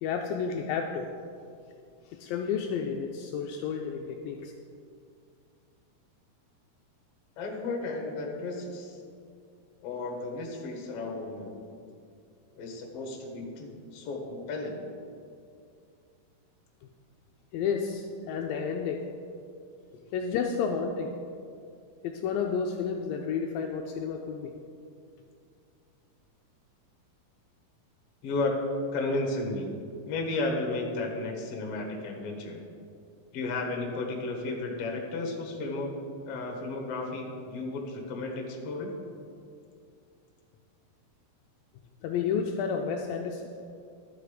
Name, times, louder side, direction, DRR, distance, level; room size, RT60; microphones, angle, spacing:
voice 1, 0.0-1.1 2.1-4.5 17.5-19.1 20.1-21.1 22.0-24.5 42.0-43.5, left 6 dB, 80° left, 3 dB, 2.2 m, -31 dB
voice 2, 7.4-9.0 9.8-11.6 12.5-14.8 28.2-29.7 30.0-32.6 33.3-35.9 36.3-38.9, left 2 dB, 55° left, 1 dB, 1.8 m, -33 dB
12.0 x 6.8 x 4.9 m, 2.4 s
omnidirectional pair, 4.3 m